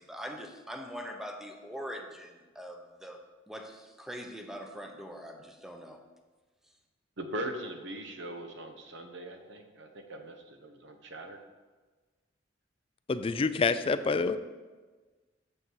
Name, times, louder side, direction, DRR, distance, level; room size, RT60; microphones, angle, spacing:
voice 1, 0.0-3.2 3.5-6.0, equal, ahead, 4 dB, 0.7 m, -42 dB
voice 2, 7.2-11.4, right 1 dB, 65° right, 5 dB, 1.0 m, -40 dB
voice 3, 13.1-14.4, left 4 dB, 30° left, 12 dB, 0.3 m, -27 dB
7.3 x 6.6 x 4.6 m, 1.3 s
head